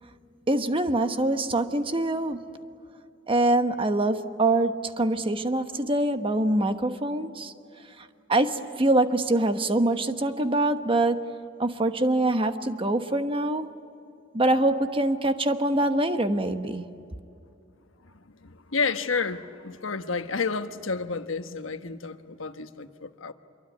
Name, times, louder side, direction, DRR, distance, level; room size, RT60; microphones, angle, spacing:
voice 1, 0.5-2.5 3.3-7.5 8.3-11.3 11.6-13.7 14.3-16.9, right 1 dB, 25° right, 1.2 m, -24 dB
voice 2, 18.0-23.3, left 4 dB, 80° left, 1.2 m, -31 dB
27.0 x 23.5 x 9.4 m
head